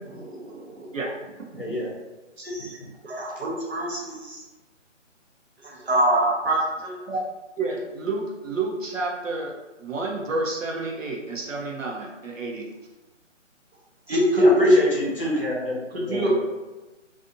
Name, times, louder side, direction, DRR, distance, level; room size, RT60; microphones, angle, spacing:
voice 1, 0.2-0.9 2.4-2.8 3.0-4.4 5.6-7.0 14.1-14.8 16.1-16.3, equal, 55° right, -4 dB, 0.9 m, -23 dB
voice 2, 1.6-1.9 14.4-16.3, left 1 dB, 45° left, -4 dB, 0.7 m, -28 dB
voice 3, 7.6-9.5 9.8-12.6, right 3 dB, 80° right, -1 dB, 0.8 m, -30 dB
2.5 x 2.5 x 2.5 m, 1.1 s
hypercardioid pair, 170°, 38 cm